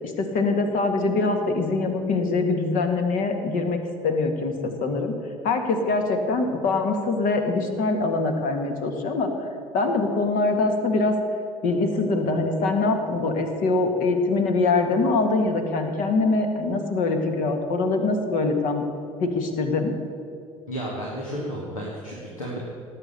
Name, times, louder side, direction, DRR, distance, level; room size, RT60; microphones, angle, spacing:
voice 1, 0.0-5.1 5.4-9.3 9.7-11.2 11.6-18.8 19.2-19.9, left 3 dB, 50° left, 5 dB, 1.8 m, -23 dB
voice 2, 20.7-22.6, equal, 80° left, -3 dB, 2.0 m, -32 dB
17.5 x 8.1 x 6.8 m, 2.5 s
figure-of-eight pair, 60°, 17 cm